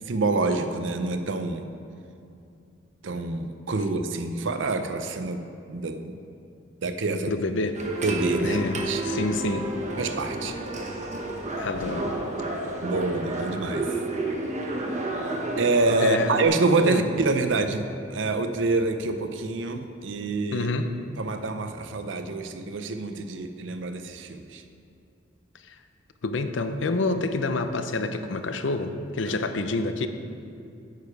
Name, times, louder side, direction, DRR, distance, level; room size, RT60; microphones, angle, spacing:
voice 1, 0.1-1.6 3.0-5.4 5.7-6.2 6.8-7.3 8.0-9.0 10.0-10.5 12.8-13.9 15.6-20.7 21.2-24.6, right 3 dB, 75° right, 8 dB, 0.6 m, -26 dB
voice 2, 7.3-7.8 8.4-9.7 11.6-12.1 16.0-16.3 16.8-17.0 20.5-21.0 25.7-25.8 26.2-30.1, left 3 dB, 70° left, 9 dB, 0.6 m, -28 dB
sound 1, 7.7-16.5, right 2 dB, 40° right, 1.0 m, -31 dB
9.2 x 6.8 x 4.8 m, 2.6 s
head